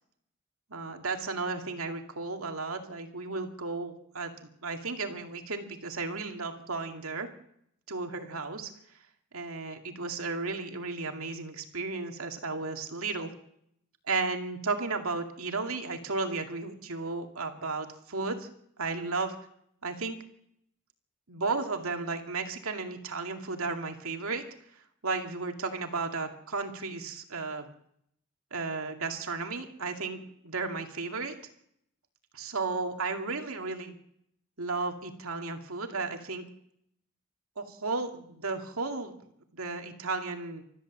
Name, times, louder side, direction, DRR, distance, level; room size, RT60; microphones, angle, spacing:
voice 1, 0.7-7.3 7.9-8.7 9.3-13.3 14.1-18.5 18.8-19.4 19.8-20.2 21.3-24.4 25.0-27.7 28.5-31.3 32.3-33.9 34.6-36.4 37.6-39.1 39.5-40.6, right 3 dB, 80° right, 4 dB, 2.3 m, -34 dB
29.5 x 14.0 x 7.4 m, 0.75 s
head